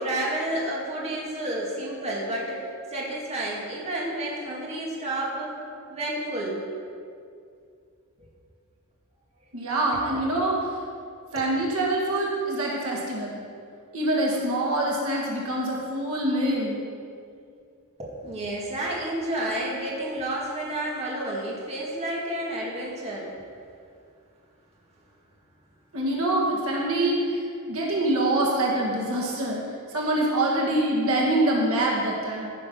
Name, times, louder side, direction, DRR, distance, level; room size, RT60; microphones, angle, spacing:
voice 1, 0.0-5.5 5.9-6.6 18.0-23.3, right 1 dB, 30° right, -4 dB, 2.2 m, -30 dB
voice 2, 9.5-10.6 11.3-13.4 13.9-16.8 25.9-29.6 29.9-32.5, right 1 dB, 70° right, -3 dB, 2.2 m, -25 dB
15.0 x 6.6 x 5.7 m, 2.3 s
head